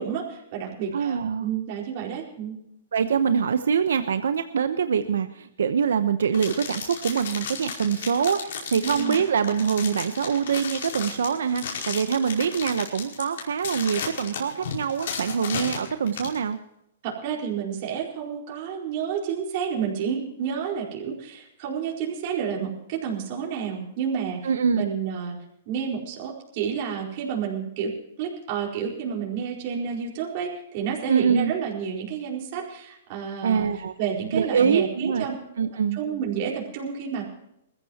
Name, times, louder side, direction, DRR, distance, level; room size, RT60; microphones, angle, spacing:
voice 1, 0.0-2.5 8.8-9.1 17.0-25.4 25.7-27.9 28.2-33.7 34.0-35.3 35.9-37.2, right 7 dB, 45° right, -2 dB, 4.7 m, -30 dB
voice 2, 0.9-1.5 2.9-16.6 24.4-24.9 31.1-31.5 33.4-33.9 34.3-35.3 35.6-36.0, right 7 dB, 90° right, 9 dB, 0.9 m, -24 dB
sound 1, 6.3-16.4, left 6 dB, 70° left, 5.2 m, -34 dB
22.0 x 14.5 x 3.0 m, 0.78 s
hypercardioid pair, 150°, 0 cm